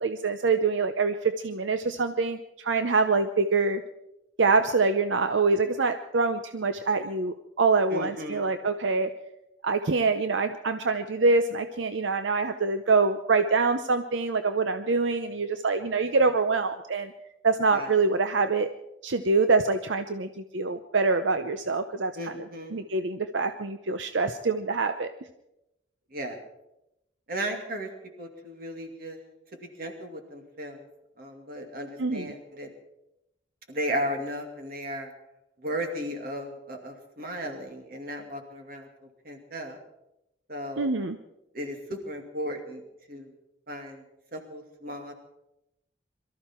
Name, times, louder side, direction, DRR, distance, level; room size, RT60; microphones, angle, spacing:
voice 1, 0.0-3.8 4.4-9.1 9.6-17.1 17.4-18.7 19.0-22.1 22.7-25.1 32.0-32.3 40.8-41.2, right 4 dB, 80° right, 9 dB, 0.7 m, -25 dB
voice 2, 7.9-8.5 17.7-17.9 22.1-22.8 26.1-26.4 27.3-27.9 28.2-29.2 29.5-30.9 31.2-32.7 33.7-35.1 35.6-38.9 39.2-39.8 40.5-41.0 41.5-42.8 43.1-43.3 43.7-44.0 44.3-45.1, equal, 50° right, 3 dB, 2.4 m, -35 dB
23.0 x 13.5 x 4.5 m, 0.87 s
head